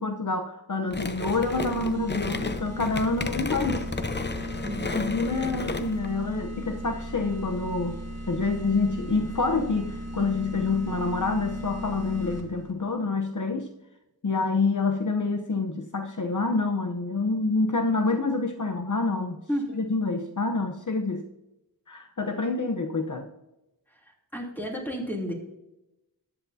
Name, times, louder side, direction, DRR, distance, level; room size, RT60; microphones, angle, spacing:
voice 1, 0.0-4.0 4.4-4.5 4.8-8.0 8.3-13.7 14.2-19.4 19.7-21.2 21.9-23.3, left 3 dB, 55° left, 5 dB, 0.9 m, -27 dB
sound 1, 0.9-6.1, left 3 dB, 30° left, 0.7 m, -33 dB
sound 2, 1.3-12.7, equal, 45° right, 1.8 m, -36 dB
voice 2, 24.3-25.3, equal, 5° left, -1 dB, 3.0 m, -31 dB
13.5 x 9.7 x 2.7 m, 0.92 s
wide cardioid pair, 60°, 36 cm